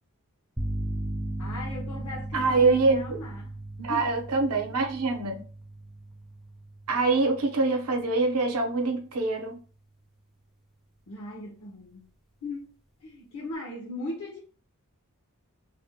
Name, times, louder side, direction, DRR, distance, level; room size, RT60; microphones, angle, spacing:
sound 1, 0.6-8.3, right 1 dB, ahead, 0.3 m, -37 dB
voice 1, 1.4-4.2 11.1-12.1 12.4-12.7 13.0-14.4, left 1 dB, 75° left, 0.6 m, -38 dB
voice 2, 2.3-3.0 3.8-5.4 6.9-9.6, right 3 dB, 80° right, 0.6 m, -24 dB
2.5 x 2.1 x 2.7 m
head